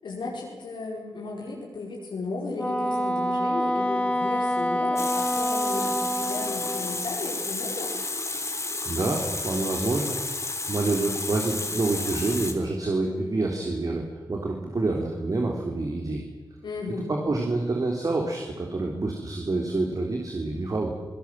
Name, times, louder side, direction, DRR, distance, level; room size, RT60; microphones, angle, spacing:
voice 1, 0.0-7.9 16.6-17.1, left 3 dB, 85° left, -3 dB, 5.0 m, -34 dB
Wind instrument woodwind instrument, 2.6-7.1, equal, 15° left, 2.2 m, -27 dB
Water tap faucet, 5.0-12.5, left 3 dB, 40° left, 3.4 m, -32 dB
voice 2, 8.8-10.2 10.7-16.2 17.1-20.9, right 2 dB, 50° right, 1 dB, 3.4 m, -27 dB
26.5 x 18.5 x 7.5 m, 1.3 s
cardioid pair, 65°, 8 cm